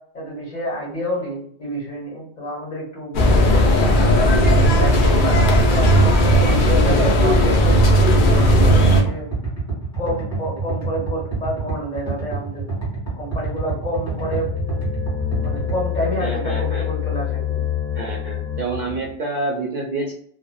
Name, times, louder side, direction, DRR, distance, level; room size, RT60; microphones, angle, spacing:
voice 1, 0.1-4.5 4.8-6.1 6.4-9.3 10.0-12.7 13.2-14.5 15.4-17.6, equal, 45° left, -5 dB, 1.5 m, -29 dB
sound 1, 3.1-9.0, equal, 60° left, 0.6 m, -15 dB
sound 2, 8.1-16.0, right 4 dB, 15° left, 1.2 m, -27 dB
sound 3, 14.0-19.1, left 10 dB, 75° left, 1.1 m, -27 dB
voice 2, 16.2-16.9 17.9-20.1, right 3 dB, 55° right, -2 dB, 0.5 m, -28 dB
2.7 x 2.0 x 2.2 m, 0.63 s
omnidirectional pair, 1.1 m